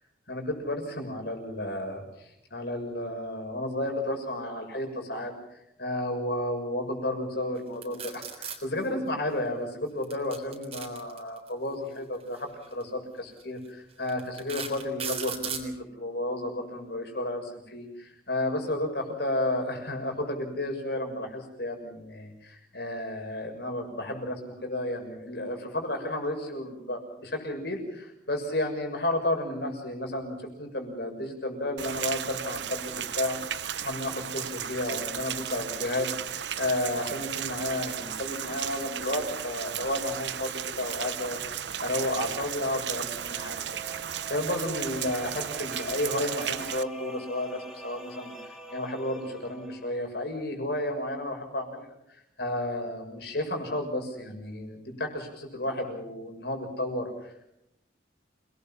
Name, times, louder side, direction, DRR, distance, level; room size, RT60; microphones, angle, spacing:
voice 1, 0.3-5.3 5.8-36.1 36.6-41.4 41.8-48.3 48.7-51.8 52.1-57.4, left 1 dB, 60° left, 4 dB, 6.7 m, -32 dB
sound 1, 7.8-8.6 10.0-11.5 12.6-12.8 13.4-13.5 14.1-15.7, right 7 dB, 30° right, 3.7 m, -36 dB
Rain, 31.8-46.8, right 9 dB, 70° right, 0.9 m, -35 dB
sound 2, 43.1-50.1, right 3 dB, ahead, 5.2 m, -45 dB
28.5 x 20.0 x 5.8 m, 0.80 s
head